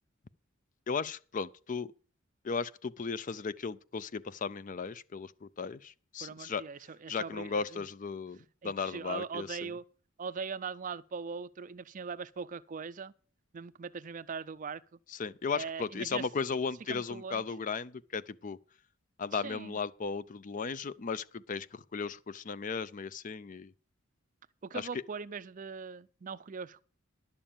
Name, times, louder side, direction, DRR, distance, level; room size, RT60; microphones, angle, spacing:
voice 1, 0.9-1.9 2.4-6.6 7.1-9.7 15.2-18.6 19.2-23.7 24.7-25.0, left 5 dB, 40° left, 0.4 m, -36 dB
voice 2, 6.2-7.9 8.6-9.8 10.2-13.1 13.5-15.0 15.5-16.3 16.9-17.5 19.3-19.8 24.6-26.8, right 5 dB, 40° right, 0.4 m, -41 dB
11.0 x 7.0 x 7.2 m
head